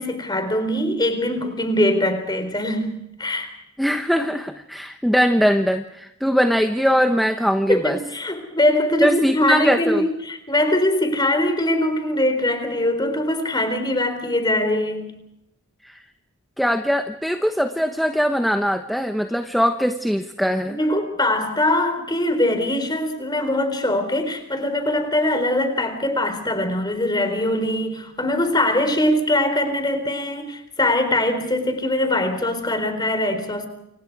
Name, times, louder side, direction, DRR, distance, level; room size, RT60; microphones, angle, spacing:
voice 1, 0.0-3.5 7.7-15.1 20.7-33.7, left 1 dB, 20° left, 4.1 m, -22 dB
voice 2, 3.8-8.0 9.0-10.0 15.8-16.0 16.6-20.8, equal, ahead, 1.0 m, -21 dB
29.5 x 26.0 x 4.8 m
head